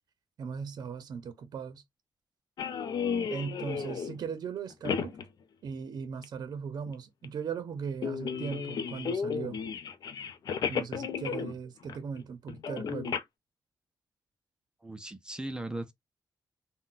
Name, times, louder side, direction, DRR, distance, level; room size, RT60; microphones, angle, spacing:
voice 1, 0.4-1.8 3.3-5.2 5.6-9.6 10.7-13.2, right 6 dB, 65° right, 0.6 m, -38 dB
sound 1, 2.6-4.2 4.7-5.3 6.2-6.3 6.9-7.0 7.2-7.3 8.0-11.6 11.9-12.2 12.5-13.2, left 7 dB, 65° left, 0.5 m, -33 dB
voice 2, 14.8-15.9, right 1 dB, 10° right, 0.4 m, -38 dB
3.8 x 2.1 x 2.4 m
wide cardioid pair, 150°, 7 cm